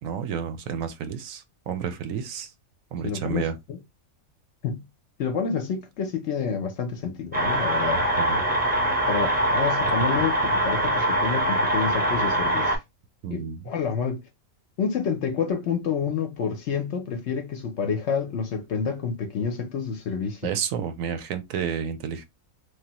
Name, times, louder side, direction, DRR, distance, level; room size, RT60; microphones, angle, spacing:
voice 1, 0.0-2.5 2.9-3.5 7.9-8.5 13.2-13.7 20.4-22.3, right 7 dB, 75° right, 0.9 m, -31 dB
voice 2, 3.0-3.8 4.6-4.9 5.2-8.0 9.1-12.8 13.3-14.2 14.8-20.5, left 6 dB, 65° left, 0.8 m, -28 dB
sound 1, 7.3-12.8, right 1 dB, 10° right, 0.4 m, -23 dB
3.2 x 2.1 x 2.8 m
omnidirectional pair, 1.5 m